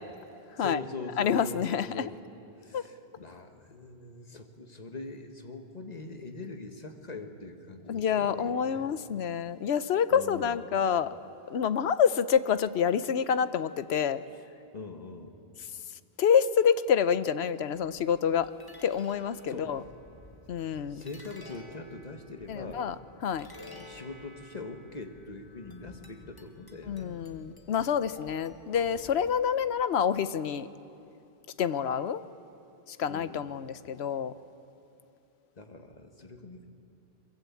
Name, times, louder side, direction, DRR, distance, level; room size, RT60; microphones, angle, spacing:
voice 1, 0.6-2.2 2.6-8.9 10.1-10.7 14.3-14.4 14.7-15.3 19.5-19.7 20.9-22.8 23.6-27.2 33.1-33.4 35.5-36.7, left 3 dB, 40° left, 5 dB, 1.7 m, -42 dB
voice 2, 1.2-2.1 2.7-2.8 7.9-11.2 11.5-14.2 16.2-18.5 18.8-19.8 20.5-21.0 22.5-23.0 23.2-23.5 26.9-30.7 31.6-32.2 32.9-34.3, left 7 dB, 90° left, 14 dB, 1.0 m, -27 dB
sound 1, 17.7-29.8, left 1 dB, 20° left, 1.8 m, -53 dB
22.5 x 22.5 x 8.5 m, 2.7 s
omnidirectional pair, 1.1 m